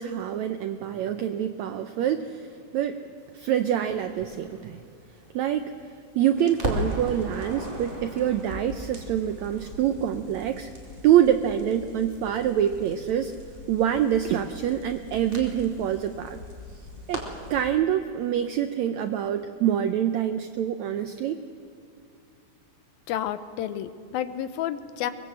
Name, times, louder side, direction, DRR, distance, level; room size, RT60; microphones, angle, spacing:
voice 1, 0.0-2.5 2.7-3.0 3.3-4.8 5.3-5.7 6.1-10.7 11.0-13.4 13.7-16.4 17.1-17.2 17.5-21.4, right 10 dB, 85° right, 9 dB, 1.6 m, -25 dB
Crackle, 3.9-6.0 6.3-17.7, equal, 15° right, 2.7 m, -38 dB
voice 2, 23.1-25.1, left 11 dB, 90° left, 12 dB, 2.7 m, -30 dB
23.5 x 21.5 x 7.8 m, 2.5 s
omnidirectional pair, 4.1 m